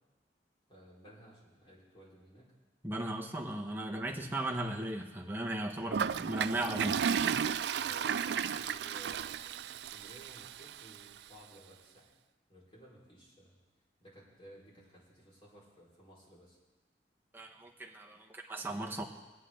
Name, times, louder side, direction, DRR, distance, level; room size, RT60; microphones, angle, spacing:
voice 1, 0.7-2.5 3.9-4.2 5.7-6.2 7.7-12.1 12.5-13.6 14.0-16.6, right 1 dB, 30° left, -6 dB, 4.9 m, -57 dB
voice 2, 2.8-7.0 17.3-19.0, right 1 dB, 10° right, 0 dB, 1.2 m, -37 dB
Toilet flush, 5.9-11.0, right 7 dB, 65° right, 0.4 m, -34 dB
23.5 x 8.5 x 3.8 m, 1.2 s
head